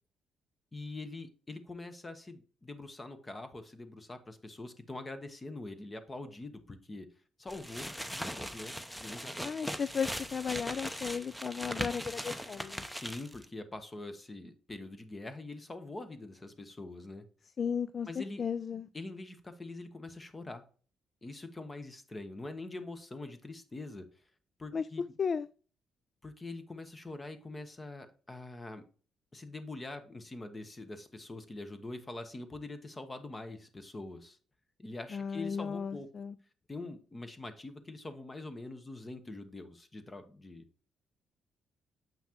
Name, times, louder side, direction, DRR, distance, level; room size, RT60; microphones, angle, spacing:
voice 1, 0.7-7.1 7.4-9.4 12.9-17.2 18.1-18.4 18.9-20.6 21.2-24.1 24.6-25.0 26.2-28.8 29.3-34.4 34.8-36.1 36.7-40.6, left 2 dB, 25° left, 1.0 m, -44 dB
sound 1, 7.5-13.4, equal, 5° left, 0.7 m, -39 dB
voice 2, 9.4-12.8 17.6-18.9 24.7-24.9 25.2-25.5 35.1-36.3, left 6 dB, 45° left, 0.3 m, -35 dB
7.4 x 5.7 x 2.9 m
cardioid pair, 90°, 0 cm